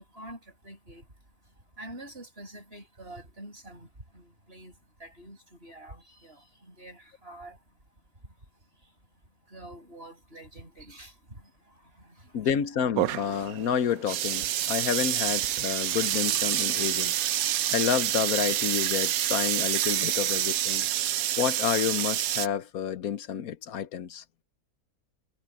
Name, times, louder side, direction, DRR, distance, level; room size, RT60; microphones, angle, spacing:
voice 1, 0.0-7.8 8.2-12.5 13.1-13.2, right 1 dB, 40° right, 7.3 m, -48 dB
voice 2, 12.3-17.2 17.7-20.9 21.4-24.2, left 8 dB, 75° left, 1.4 m, -29 dB
sound 1, 13.0-22.5, right 12 dB, 80° right, 1.1 m, -27 dB
omnidirectional pair, 1.5 m